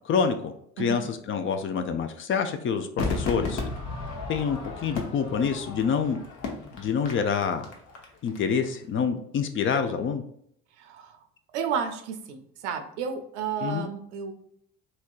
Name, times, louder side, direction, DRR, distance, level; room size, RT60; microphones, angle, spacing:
voice 1, 0.1-3.6 4.3-6.2 6.7-7.6 8.2-10.2 13.6-13.9, left 6 dB, 35° left, 8 dB, 0.4 m, -27 dB
voice 2, 0.8-1.1 10.8-11.2 11.5-14.3, right 7 dB, 75° right, 7 dB, 0.6 m, -32 dB
Crowd / Fireworks, 3.0-8.4 8.6-8.7, left 3 dB, 55° left, 0.8 m, -34 dB
3.2 x 2.8 x 2.4 m, 0.69 s
hypercardioid pair, 55°, 36 cm